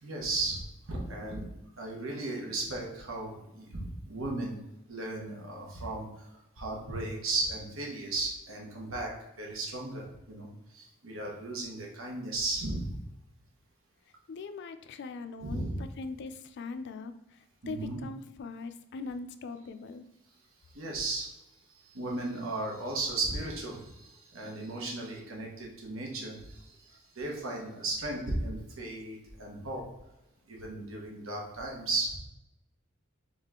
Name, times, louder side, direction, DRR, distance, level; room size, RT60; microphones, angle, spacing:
voice 1, 0.0-0.6 0.9-1.4 1.8-4.6 4.9-6.3 6.6-10.5 10.7-12.9 15.4-15.8 17.6-18.0 20.7-21.3 21.8-29.8 30.5-32.2, right 2 dB, 85° right, -1 dB, 1.3 m, -35 dB
voice 2, 14.3-20.1, left 3 dB, 60° left, 9 dB, 0.4 m, -41 dB
3.9 x 3.6 x 3.6 m, 0.95 s
head